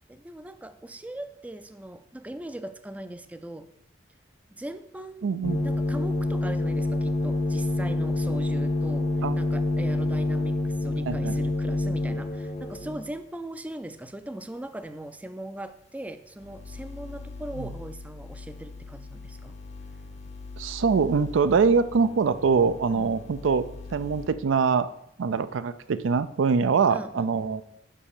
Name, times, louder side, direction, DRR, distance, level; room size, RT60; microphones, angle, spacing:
voice 1, 0.1-3.7 4.5-5.3 5.6-19.6 22.9-23.1 26.9-27.3, right 1 dB, 10° right, 10 dB, 0.3 m, -39 dB
voice 2, 5.2-5.6 9.2-9.4 11.0-11.4 17.6-17.7 20.6-23.7 23.9-24.9 25.2-27.6, right 5 dB, 85° right, 13 dB, 0.4 m, -23 dB
sound 1, 5.4-13.1 16.4-24.3, left 2 dB, 35° left, 0.6 m, -30 dB
5.5 x 5.1 x 6.5 m, 0.78 s
head